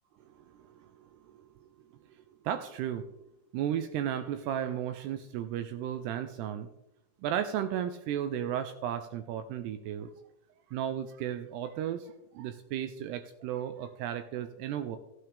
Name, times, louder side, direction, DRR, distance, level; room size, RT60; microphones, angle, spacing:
voice 1, 0.3-1.5 2.4-3.1 3.5-6.7 7.2-10.1 10.7-15.0, right 10 dB, 85° right, 9 dB, 2.4 m, -34 dB
15.0 x 9.1 x 3.4 m, 0.85 s
omnidirectional pair, 5.2 m